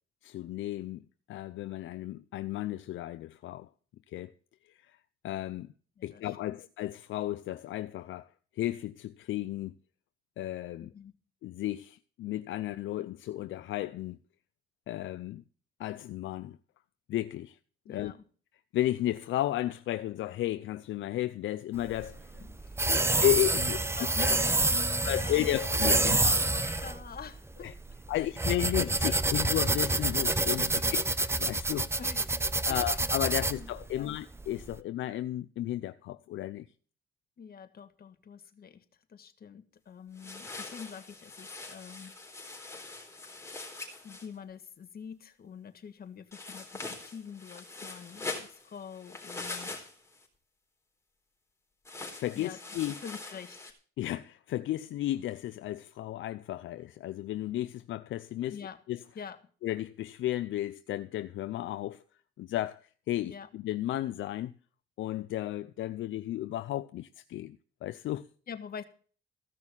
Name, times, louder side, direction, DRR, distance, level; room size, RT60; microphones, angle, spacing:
voice 1, 0.2-1.0 1.3-3.7 4.1-4.3 4.7-5.0 5.2-5.7 6.0-8.3 8.6-9.7 10.4-10.9 11.4-14.2 14.9-15.4 15.8-16.6 17.1-17.6 17.9-18.1 18.7-22.3 23.2-23.8 25.0-26.4 27.6-27.7 28.1-31.9 32.7-36.6 52.2-53.0 54.0-59.0 59.6-62.0 62.4-62.8 63.1-64.5 65.0-68.3, left 14 dB, 75° left, 0.6 m, -33 dB
voice 2, 10.8-11.1 17.9-18.2 22.4-23.1 24.0-25.6 26.0-27.7 28.1-28.2 29.0-29.3 32.0-32.4 32.7-32.8 33.5-34.2 37.4-38.8 39.1-42.1 44.0-49.9 52.3-52.6 53.0-53.7 58.5-58.8 59.1-59.4 63.2-63.5 68.5-68.8, left 7 dB, 50° left, 1.6 m, -45 dB
sound 1, 21.8-34.7, right 2 dB, 15° right, 0.8 m, -28 dB
sound 2, 40.2-44.3 46.3-50.3 51.8-53.7, left 3 dB, 15° left, 3.8 m, -43 dB
15.0 x 6.2 x 7.3 m
cardioid pair, 90°, 20 cm